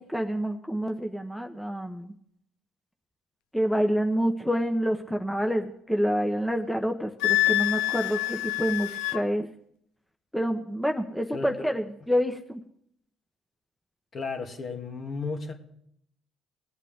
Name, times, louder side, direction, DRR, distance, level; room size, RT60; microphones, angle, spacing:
voice 1, 0.0-2.2 3.5-9.5 10.3-12.6, equal, ahead, 4 dB, 1.1 m, -27 dB
Wind instrument woodwind instrument, 7.2-9.2, left 18 dB, 90° left, 0.4 m, -26 dB
voice 2, 14.1-15.5, left 4 dB, 50° left, 3 dB, 2.2 m, -33 dB
20.0 x 8.3 x 3.6 m, 0.70 s
supercardioid pair, 70°, 0 cm